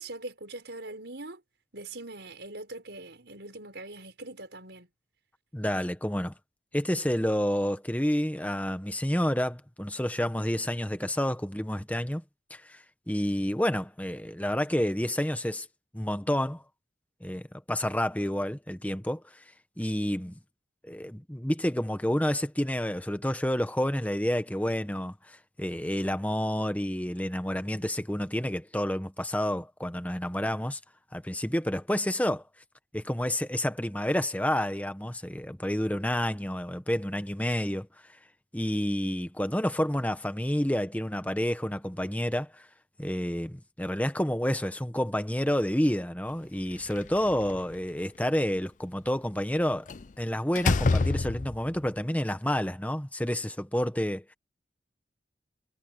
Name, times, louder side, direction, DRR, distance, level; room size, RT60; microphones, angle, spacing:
voice 1, 0.0-1.4 1.7-4.9, right 2 dB, 70° right, 5.3 m, -42 dB
voice 2, 5.5-6.3 6.7-12.2 12.5-15.7 15.9-16.6 17.2-19.2 19.8-20.4 20.8-30.8 31.1-32.4 32.9-37.9 38.5-42.6 43.0-49.9 50.2-54.3, equal, 10° left, 1.2 m, -29 dB
Slam, 46.7-47.8 49.9-50.1 50.6-51.8, left 3 dB, 45° left, 0.5 m, -27 dB
head